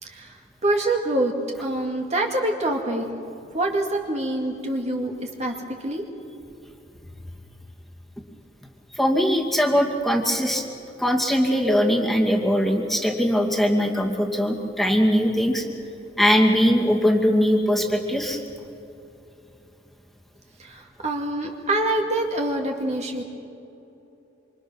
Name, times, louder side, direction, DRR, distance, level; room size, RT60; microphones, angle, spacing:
voice 1, 0.0-1.3 1.6-3.1 3.5-5.5 5.8-6.0 20.6-23.2, right 1 dB, 35° right, 1 dB, 2.2 m, -25 dB
voice 2, 9.0-10.6 11.0-15.6 16.2-18.4, equal, ahead, 0 dB, 2.4 m, -21 dB
26.5 x 26.5 x 6.3 m, 2.8 s
head